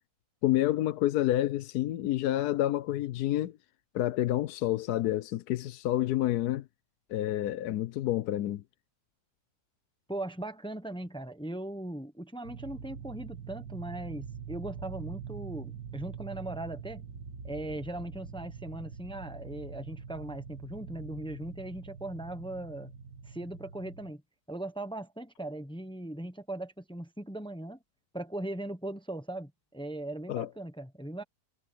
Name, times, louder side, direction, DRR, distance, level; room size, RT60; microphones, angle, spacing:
voice 1, 0.4-3.6 3.9-6.6 7.1-8.6 30.3-30.5, left 14 dB, 80° left, 1.2 m, -28 dB
voice 2, 10.1-17.1 17.4-22.9 23.3-24.2 24.5-27.8 28.1-31.2, right 1 dB, 5° left, 0.8 m, -39 dB
sound 1, 12.4-24.1, right 7 dB, 90° right, 2.7 m, -44 dB
omnidirectional pair, 1.7 m